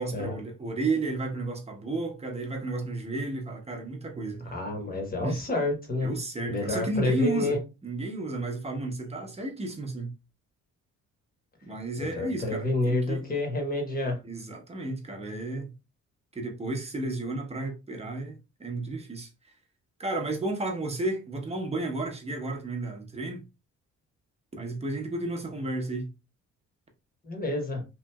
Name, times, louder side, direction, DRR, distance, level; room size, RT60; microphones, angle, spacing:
voice 1, 0.0-4.5 5.2-5.4 6.0-7.6 7.8-10.1 11.6-13.2 14.2-15.7 16.3-18.3 18.6-19.3 20.0-23.4 24.5-26.1, right 2 dB, 20° right, 0.8 m, -32 dB
voice 2, 4.5-6.1 6.5-7.6 12.0-14.2 27.2-27.8, left 2 dB, 30° left, 1.1 m, -29 dB
2.9 x 2.5 x 2.2 m
cardioid pair, 90°, 30 cm